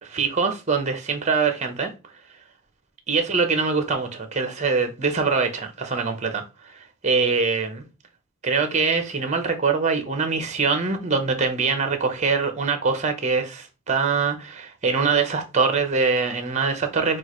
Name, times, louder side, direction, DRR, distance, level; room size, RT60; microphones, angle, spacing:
voice 1, 0.0-1.9 3.1-6.4 7.0-7.8 8.4-17.2, right 4 dB, 30° right, 0.8 m, -23 dB
6.2 x 2.4 x 3.0 m
head